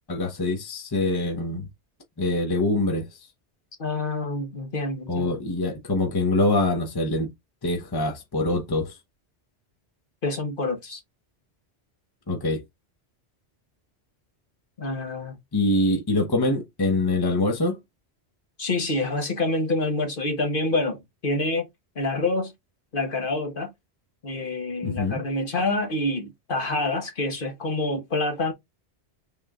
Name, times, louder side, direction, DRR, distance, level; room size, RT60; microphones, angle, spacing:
voice 1, 0.1-1.7 2.2-3.2 5.1-7.3 7.6-9.0 12.3-12.6 15.5-17.8 24.8-25.2, left 2 dB, 20° left, 0.9 m, -24 dB
voice 2, 3.8-5.4 10.2-11.0 14.8-15.4 18.6-21.7 21.9-22.5 22.9-23.7 24.2-28.5, left 2 dB, 50° left, 1.3 m, -27 dB
6.1 x 3.6 x 2.4 m
omnidirectional pair, 1.1 m